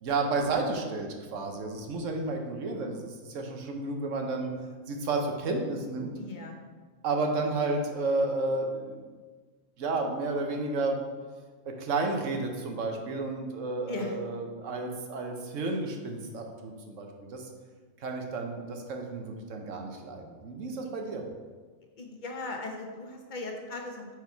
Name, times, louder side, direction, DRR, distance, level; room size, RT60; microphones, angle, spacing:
voice 1, 0.0-4.5 4.9-6.1 7.0-9.0 9.8-11.0 11.6-17.5 18.0-21.2, right 3 dB, 70° right, 3 dB, 1.1 m, -31 dB
voice 2, 6.2-6.5 13.9-14.2 22.0-24.1, left 3 dB, 40° left, 2 dB, 0.9 m, -38 dB
5.3 x 4.8 x 4.5 m, 1.4 s
omnidirectional pair, 1.4 m